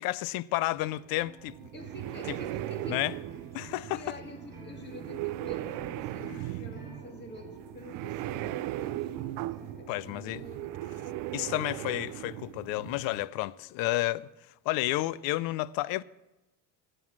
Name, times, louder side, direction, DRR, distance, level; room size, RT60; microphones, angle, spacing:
voice 1, 0.0-1.7 2.3-2.4 2.9-3.1 3.5-4.0 6.2-6.4 9.9-10.4 11.3-14.3 14.7-16.0, left 17 dB, 75° left, 0.5 m, -31 dB
sound 1, 0.8-10.9, right 1 dB, 10° right, 2.8 m, -54 dB
sound 2, 1.5-13.3, right 15 dB, 65° right, 0.5 m, -38 dB
voice 2, 1.7-3.0 3.9-11.2, left 1 dB, 30° left, 1.7 m, -47 dB
sound 3, 2.4-13.4, right 1 dB, 10° left, 2.2 m, -54 dB
11.0 x 7.9 x 7.3 m
cardioid pair, 130°, 35 cm